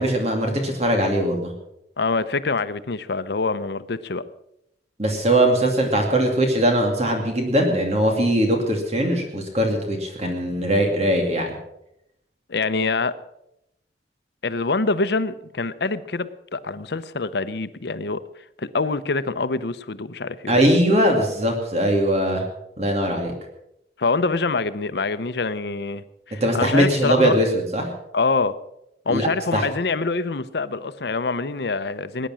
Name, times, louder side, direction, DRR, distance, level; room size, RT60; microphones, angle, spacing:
voice 1, 0.0-1.5 5.0-11.6 20.5-22.4 22.8-23.3 26.4-27.9 29.1-29.7, right 1 dB, 35° right, 3 dB, 2.4 m, -21 dB
voice 2, 2.0-4.2 12.5-13.1 14.4-18.2 18.6-20.5 24.0-27.4 28.1-28.5 29.1-32.3, left 3 dB, 70° left, 13 dB, 0.7 m, -25 dB
19.5 x 10.0 x 6.3 m, 0.82 s
head